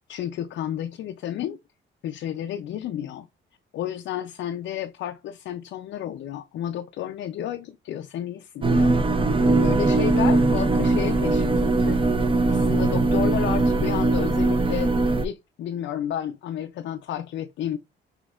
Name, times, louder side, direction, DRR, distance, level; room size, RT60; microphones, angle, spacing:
voice 1, 0.1-1.6 2.0-3.3 3.7-8.9 9.5-12.0 12.5-14.9 15.2-17.8, left 10 dB, 70° left, 0.5 m, -31 dB
sound 1, 8.6-15.3, right 2 dB, 25° right, 0.6 m, -21 dB
6.1 x 2.8 x 2.4 m
cardioid pair, 90°, 20 cm